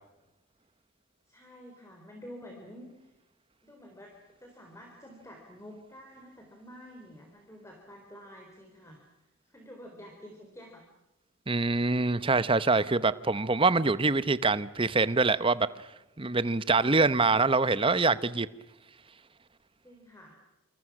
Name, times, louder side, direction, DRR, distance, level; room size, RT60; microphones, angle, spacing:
voice 1, 1.3-3.1 3.6-4.1 4.4-9.0 9.4-10.8 19.8-20.4, equal, 15° left, 4.1 m, -49 dB
voice 2, 11.5-15.7 16.2-18.5, right 3 dB, 25° right, 0.8 m, -25 dB
27.5 x 27.0 x 6.2 m
head